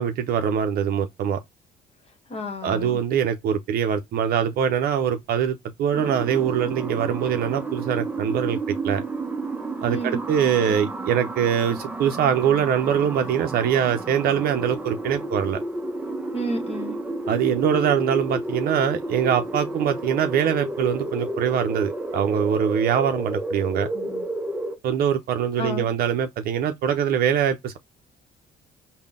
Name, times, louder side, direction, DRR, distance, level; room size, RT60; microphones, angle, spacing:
voice 1, 0.0-1.4 2.6-9.0 9.8-15.6 17.3-23.9 24.8-27.8, right 8 dB, 65° right, 0.5 m, -23 dB
voice 2, 2.3-3.0 9.9-10.2 16.3-17.0 23.9-24.2 25.6-25.9, equal, 35° left, 1.1 m, -31 dB
sound 1, 5.9-24.8, right 2 dB, 10° right, 0.6 m, -31 dB
3.7 x 2.1 x 3.4 m
cardioid pair, 110°, 17 cm